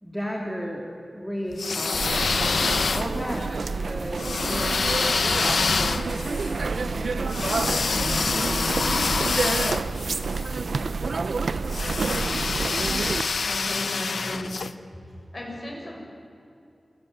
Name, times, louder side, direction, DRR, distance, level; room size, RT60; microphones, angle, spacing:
voice 1, 0.0-3.5 3.8-9.4, equal, ahead, -2 dB, 3.4 m, -35 dB
sound 1, 1.5-3.4 4.2-10.5 11.7-14.7, left 4 dB, 90° left, 0.9 m, -26 dB
sound 2, 1.9-13.2, right 4 dB, 80° right, 0.9 m, -28 dB
voice 2, 13.4-14.6 15.3-16.0, left 1 dB, 35° left, 0 dB, 6.7 m, -35 dB
27.5 x 17.5 x 9.2 m, 2.6 s
wide cardioid pair, 85°, 0 cm